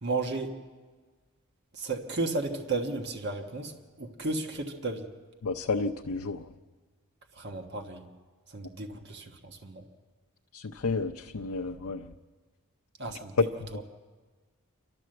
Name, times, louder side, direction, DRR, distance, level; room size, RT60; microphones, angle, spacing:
voice 1, 0.0-0.6 1.7-3.7 4.0-5.1 7.3-8.1 8.5-9.8 13.0-13.8, right 3 dB, 50° right, 4 dB, 1.4 m, -34 dB
voice 2, 5.4-6.4 10.5-12.0, left 3 dB, 75° left, 2 dB, 0.7 m, -32 dB
27.5 x 12.5 x 7.7 m, 1.4 s
head